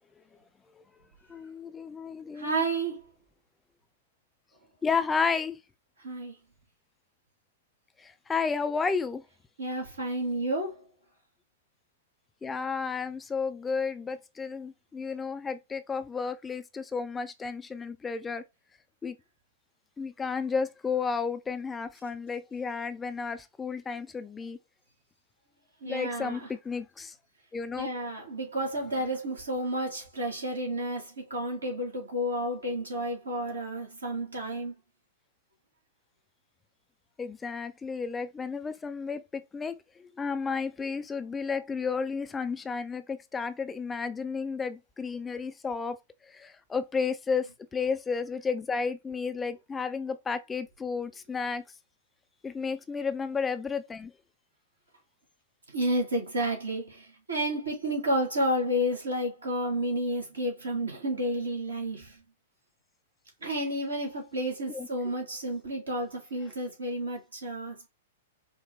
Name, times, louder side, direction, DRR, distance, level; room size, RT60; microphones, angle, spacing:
voice 1, 1.3-2.6 4.8-5.6 8.0-9.2 12.4-18.4 19.0-19.2 20.0-24.6 25.8-27.1 27.5-27.9 37.2-46.0 46.3-51.6 52.4-54.1 64.7-64.9, left 5 dB, 15° left, 0.4 m, -32 dB
voice 2, 2.4-3.1 6.0-6.3 9.6-10.8 25.8-26.5 27.8-34.7 55.7-62.2 63.4-67.9, right 1 dB, 75° right, 2.0 m, -31 dB
5.0 x 2.1 x 3.3 m
figure-of-eight pair, 105°, 0 cm